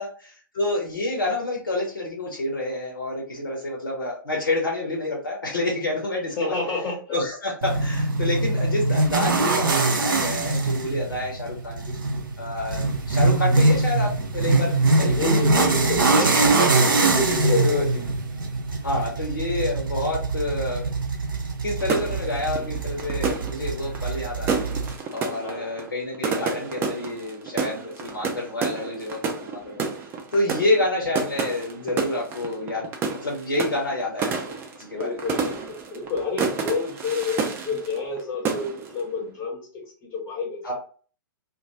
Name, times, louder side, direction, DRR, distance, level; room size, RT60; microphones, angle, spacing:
voice 1, 0.0-6.5 7.1-11.8 12.4-15.3 16.2-16.7 17.6-18.0 18.8-20.9 21.6-24.6 25.1-29.9 30.3-32.9 33.2-35.2 40.6-40.7, left 2 dB, 75° left, -2 dB, 0.7 m, -28 dB
voice 2, 6.4-7.2 15.0-17.9 25.4-25.8 34.9-40.7, left 4 dB, 20° left, -2 dB, 0.7 m, -29 dB
sound 1, 7.6-24.9, right 3 dB, 70° right, 0.6 m, -23 dB
sound 2, 21.8-38.2 38.5-39.0, right 5 dB, 20° right, 0.4 m, -30 dB
2.3 x 2.2 x 2.7 m, 0.41 s
figure-of-eight pair, 110°, 11 cm